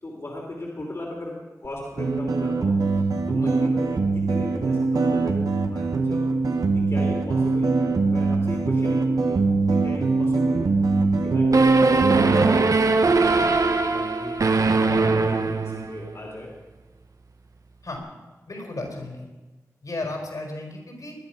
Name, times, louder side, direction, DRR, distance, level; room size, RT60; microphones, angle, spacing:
voice 1, 0.0-2.8 3.3-5.4 5.7-6.3 6.7-10.7 11.2-12.7 13.1-14.4 14.8-16.5, left 1 dB, 50° left, -1 dB, 3.0 m, -37 dB
sound 1, 2.0-12.6, right 3 dB, 90° right, 1.4 m, -22 dB
sound 2, 11.5-16.2, right 3 dB, 60° right, 1.0 m, -21 dB
voice 2, 18.5-19.3 19.8-21.2, left 2 dB, 70° left, 2 dB, 4.8 m, -34 dB
20.5 x 11.0 x 5.9 m, 1.2 s
wide cardioid pair, 70°, 6 cm